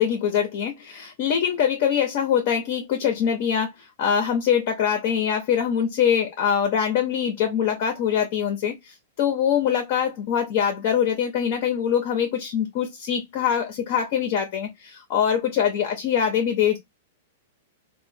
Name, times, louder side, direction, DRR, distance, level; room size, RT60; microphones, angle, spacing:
voice 1, 0.0-3.7 4.0-8.7 9.2-16.8, left 8 dB, 35° left, 0.5 m, -23 dB
2.9 x 2.0 x 2.5 m
supercardioid pair, 175°, 0 cm